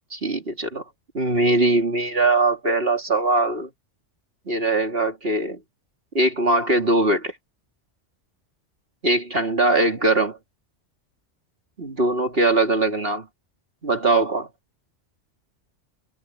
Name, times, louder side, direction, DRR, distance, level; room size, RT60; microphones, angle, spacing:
voice 1, 0.1-0.8 1.1-3.7 4.5-5.6 6.1-7.4 9.0-10.4 11.8-13.3 13.8-14.5, right 2 dB, 50° right, 3.1 m, -21 dB
omnidirectional pair, 1.2 m